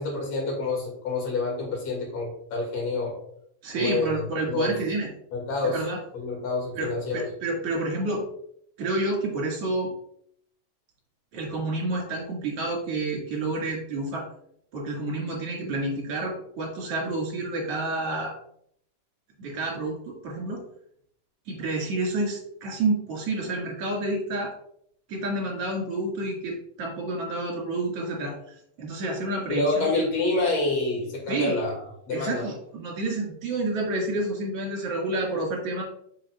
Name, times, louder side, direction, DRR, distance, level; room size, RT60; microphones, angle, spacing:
voice 1, 0.0-3.2 3.7-4.2 4.4-4.8 5.3-5.9 6.1-7.2 29.5-32.5, left 3 dB, 55° left, -2 dB, 3.0 m, -27 dB
voice 2, 3.6-5.1 5.6-6.0 6.7-8.2 8.8-9.9 11.3-14.3 14.7-18.3 19.4-20.6 21.5-24.5 25.1-30.1 31.3-31.5 32.1-35.8, right 2 dB, 50° right, -1 dB, 2.5 m, -29 dB
7.0 x 5.9 x 2.3 m, 0.70 s
omnidirectional pair, 4.0 m